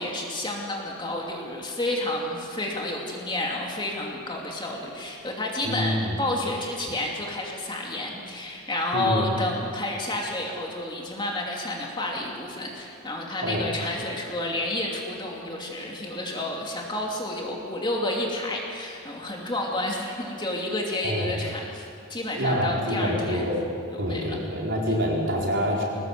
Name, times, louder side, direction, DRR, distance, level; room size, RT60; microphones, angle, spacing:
voice 1, 0.0-23.5 23.9-24.4, left 1 dB, 20° left, -1 dB, 2.7 m, -30 dB
voice 2, 5.6-6.1 8.9-9.3 13.4-13.7 21.0-21.4 22.4-23.7 24.0-25.8, equal, 55° right, -3 dB, 4.5 m, -26 dB
22.5 x 18.5 x 7.7 m, 2.5 s
head